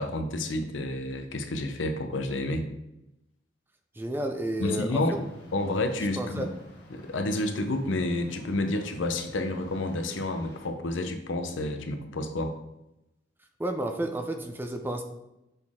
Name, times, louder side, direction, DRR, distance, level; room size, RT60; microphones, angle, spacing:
voice 1, 0.0-2.7 4.6-6.5 6.9-12.5, left 2 dB, 90° left, 7 dB, 0.7 m, -30 dB
voice 2, 4.0-5.0 6.2-6.5 13.6-15.0, right 1 dB, 10° right, 5 dB, 0.4 m, -31 dB
sound 1, 4.9-10.7, left 1 dB, 60° left, 1.5 m, -52 dB
6.7 x 4.2 x 3.6 m, 0.89 s
head